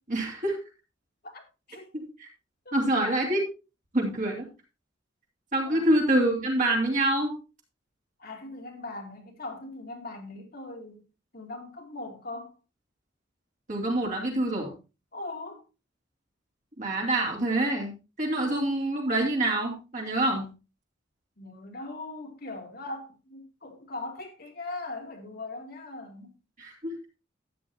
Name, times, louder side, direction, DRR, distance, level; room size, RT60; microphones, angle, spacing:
voice 1, 0.1-0.6 1.9-2.3 2.7-3.4 3.9-4.5 5.5-7.4 13.7-14.7 16.8-17.9 18.2-20.5 26.6-27.0, right 1 dB, 40° right, 2.8 m, -26 dB
voice 2, 2.7-3.2 5.6-5.9 8.2-11.0 11.3-12.6 15.1-15.6 21.4-26.4, left 2 dB, 50° left, 2.4 m, -40 dB
13.0 x 8.9 x 2.8 m
head